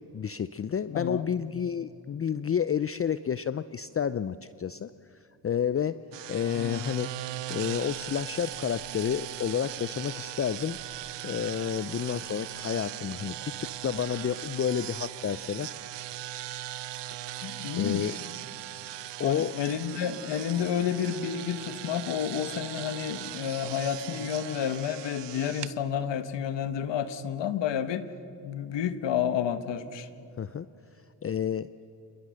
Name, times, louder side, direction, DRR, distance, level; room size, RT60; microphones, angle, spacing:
voice 1, 0.1-4.9 5.4-6.0 6.3-7.1 7.5-10.8 11.2-15.7 17.8-18.2 19.2-19.5 24.2-24.3 30.4-30.7 31.2-31.7, left 8 dB, 35° left, 15 dB, 0.5 m, -30 dB
voice 2, 0.9-1.3 6.5-6.9 17.4-18.2 19.2-28.1 28.4-30.1, left 9 dB, 85° left, 12 dB, 1.2 m, -30 dB
sound 1, 6.1-25.7, right 14 dB, 80° right, 0.7 m, -39 dB
27.0 x 22.0 x 6.5 m, 2.8 s
cardioid pair, 65°, 42 cm